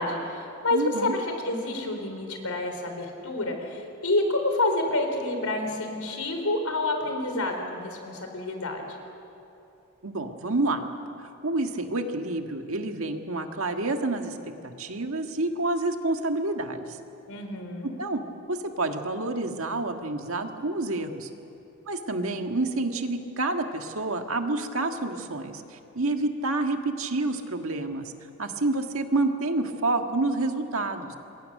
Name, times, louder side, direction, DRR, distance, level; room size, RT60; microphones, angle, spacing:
voice 1, 0.0-8.8 17.3-18.0, left 2 dB, 85° left, 4 dB, 3.9 m, -28 dB
voice 2, 0.7-1.2 10.0-10.9 11.2-14.4 14.6-17.0 18.0-18.2 18.5-21.3 21.9-28.1 28.4-31.2, right 2 dB, 70° right, 5 dB, 1.8 m, -28 dB
27.5 x 22.5 x 6.7 m, 2.8 s
head